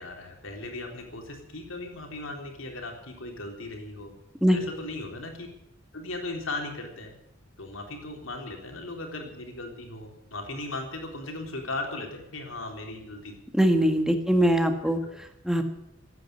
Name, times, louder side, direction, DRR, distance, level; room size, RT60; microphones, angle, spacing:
voice 1, 0.0-4.1 4.5-5.5 5.9-7.1 7.6-13.4 14.3-14.5, left 2 dB, 90° left, 2 dB, 3.7 m, -37 dB
voice 2, 13.6-15.0 15.4-15.6, equal, 5° right, 6 dB, 1.7 m, -21 dB
15.5 x 9.5 x 9.7 m, 0.84 s
head